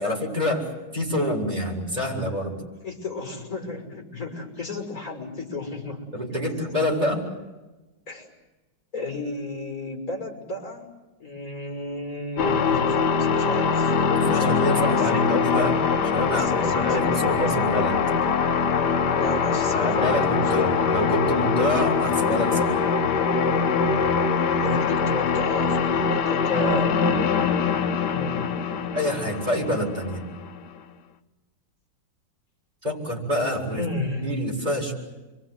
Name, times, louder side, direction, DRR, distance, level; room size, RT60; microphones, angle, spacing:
voice 1, 0.0-2.5 6.1-7.3 14.1-15.8 16.0-18.0 19.7-22.7 28.9-30.2 32.8-33.8 34.1-34.9, left 1 dB, 20° right, -1 dB, 7.3 m, -26 dB
voice 2, 2.8-6.1 8.1-8.3 8.9-10.9 11.2-13.9 14.2-15.2 16.3-17.1 17.5-17.7 19.1-20.7 24.6-26.9 28.0-28.9 33.7-34.3, left 2 dB, 45° left, 3 dB, 6.3 m, -33 dB
sound 1, 12.4-30.7, left 5 dB, 65° left, 1.7 m, -23 dB
29.5 x 24.0 x 8.1 m, 1.1 s
omnidirectional pair, 2.0 m